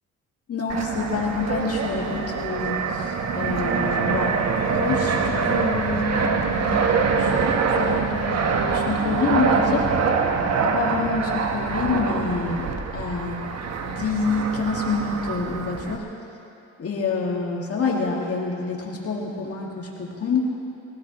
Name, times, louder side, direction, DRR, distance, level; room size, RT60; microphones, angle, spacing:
voice 1, 0.5-4.3 4.7-9.9 10.6-12.7 12.9-16.1 16.8-20.5, left 4 dB, 50° left, -1 dB, 2.1 m, -27 dB
Fixed-wing aircraft airplane, 0.7-16.0, right 5 dB, 60° right, 1.3 m, -24 dB
25.0 x 16.5 x 3.1 m, 2.6 s
cardioid pair, 90°, 30 cm